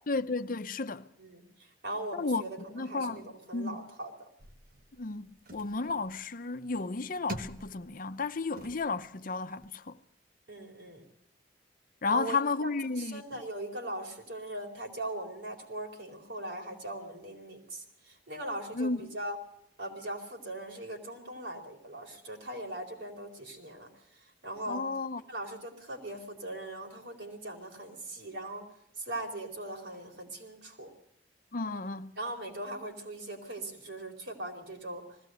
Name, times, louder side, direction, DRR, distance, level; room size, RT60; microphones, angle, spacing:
voice 1, 0.1-1.1 2.1-3.8 5.0-10.0 12.0-13.4 18.7-19.0 24.7-25.2 31.5-32.2, left 3 dB, 50° left, 0.7 m, -33 dB
voice 2, 1.2-4.3 10.5-11.0 12.1-12.7 13.0-19.4 19.8-24.9 25.3-28.7 29.0-30.9 32.2-35.0, right 1 dB, 70° right, 4.4 m, -40 dB
sound 1, 4.4-9.7, right 1 dB, 50° right, 1.4 m, -47 dB
20.0 x 16.5 x 7.8 m
head